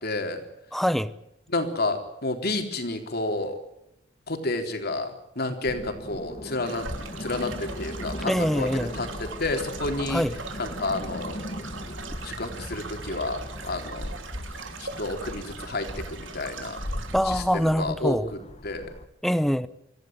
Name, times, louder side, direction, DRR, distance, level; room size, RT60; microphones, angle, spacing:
voice 1, 0.0-0.4 1.5-3.6 4.3-6.9 7.2-10.2 10.6-11.4 12.2-14.1 14.8-16.8 17.2-18.9, left 2 dB, 55° left, 3.7 m, -30 dB
voice 2, 0.7-1.1 8.3-8.9 10.1-10.3 17.1-18.3 19.2-19.7, equal, ahead, 0.8 m, -24 dB
sound 1, 5.7-19.1, left 1 dB, 35° left, 1.8 m, -38 dB
sound 2, 6.6-17.2, right 4 dB, 80° right, 3.2 m, -41 dB
25.0 x 15.5 x 9.4 m
head